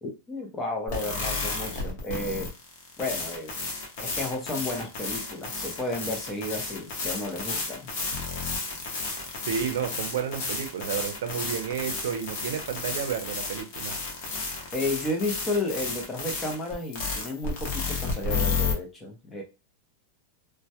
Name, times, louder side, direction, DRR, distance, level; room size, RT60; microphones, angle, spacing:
voice 1, 0.0-2.5 3.0-3.5 4.0-7.9 14.7-19.4, left 2 dB, 15° left, 0.5 m, -32 dB
sound 1, 0.9-18.7, left 4 dB, 50° left, 0.8 m, -32 dB
voice 2, 9.5-13.9, right 8 dB, 75° right, 0.5 m, -31 dB
2.1 x 2.1 x 2.8 m
supercardioid pair, 160°, 0 cm